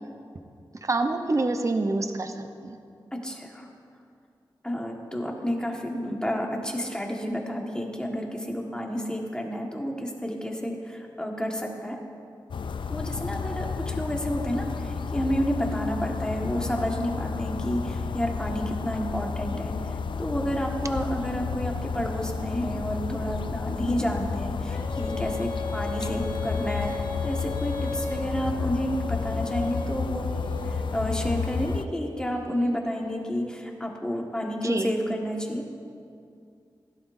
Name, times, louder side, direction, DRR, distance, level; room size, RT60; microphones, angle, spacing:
voice 1, 0.8-2.8 34.6-34.9, right 2 dB, 40° right, 6 dB, 0.8 m, -27 dB
voice 2, 3.1-3.7 4.6-12.0 12.9-30.3 30.6-35.6, equal, 10° left, 0 dB, 1.6 m, -30 dB
sound 1, 12.5-31.8, left 5 dB, 75° left, 0.4 m, -31 dB
Female singing, 24.7-33.5, left 2 dB, 50° left, 1.6 m, -37 dB
16.0 x 11.5 x 2.6 m, 2.4 s
cardioid pair, 65°, 8 cm